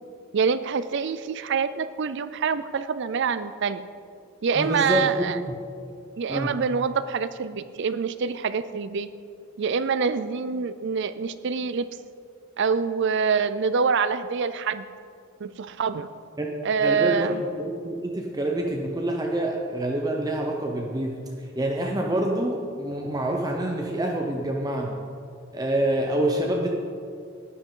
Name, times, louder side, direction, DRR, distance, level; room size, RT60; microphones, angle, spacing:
voice 1, 0.3-3.8 4.4-5.4 6.2-9.1 9.6-11.9 12.6-14.8 15.4-16.1 16.6-17.4, right 5 dB, 55° right, 14 dB, 0.4 m, -25 dB
voice 2, 4.6-5.6 6.3-6.6 16.4-16.5 16.8-21.2 21.5-25.0 25.5-26.9, right 1 dB, 20° right, 0 dB, 0.7 m, -27 dB
12.0 x 9.8 x 3.8 m, 2.3 s
head